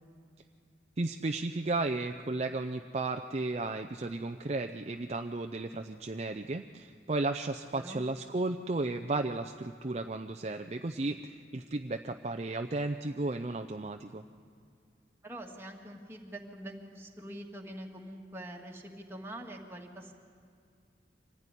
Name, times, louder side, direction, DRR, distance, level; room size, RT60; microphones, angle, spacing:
voice 1, 1.0-14.2, right 2 dB, 40° right, 6 dB, 0.6 m, -34 dB
voice 2, 7.6-8.0 15.2-20.1, right 1 dB, 15° right, 0 dB, 2.0 m, -44 dB
25.0 x 15.5 x 9.9 m, 2.3 s
head